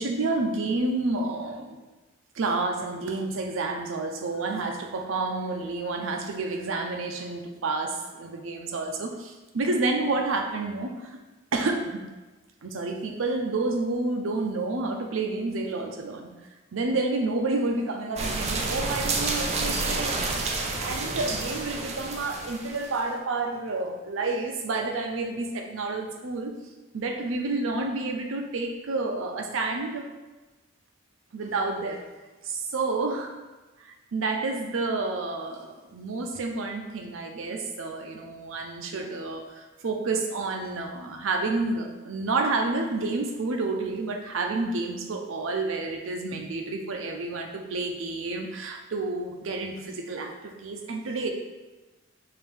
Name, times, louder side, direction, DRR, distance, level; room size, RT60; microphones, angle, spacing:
voice 1, 0.0-1.8 2.3-11.1 11.5-12.0 12.6-16.3 16.7-20.3 20.8-26.5 26.9-30.1 31.3-32.0 32.4-33.3 33.8-51.3, right 3 dB, 85° right, 3 dB, 0.5 m, -29 dB
sound 1, 18.2-23.0, right 3 dB, 30° right, 0.4 m, -29 dB
4.8 x 2.6 x 3.3 m, 1.2 s
head